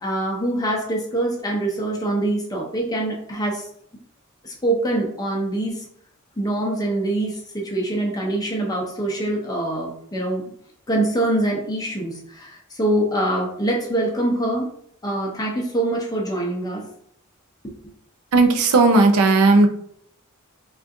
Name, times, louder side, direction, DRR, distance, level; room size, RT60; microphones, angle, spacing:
voice 1, 0.0-3.7 4.4-5.8 6.4-10.4 10.9-14.7 15.0-16.9, right 1 dB, 15° left, -1 dB, 0.5 m, -24 dB
voice 2, 18.3-19.7, right 3 dB, 85° right, 6 dB, 0.5 m, -15 dB
3.6 x 2.3 x 2.6 m, 0.66 s
head